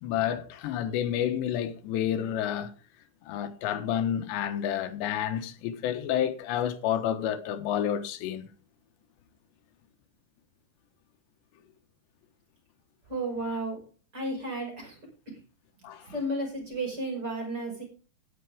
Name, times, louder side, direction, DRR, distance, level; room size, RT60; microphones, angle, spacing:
voice 1, 0.0-2.7 3.2-8.5 15.8-16.1, left 10 dB, 85° left, 3.4 m, -30 dB
voice 2, 13.1-13.8 14.1-15.0 16.1-17.8, right 1 dB, 25° right, 6.0 m, -33 dB
18.0 x 8.9 x 3.5 m
omnidirectional pair, 4.9 m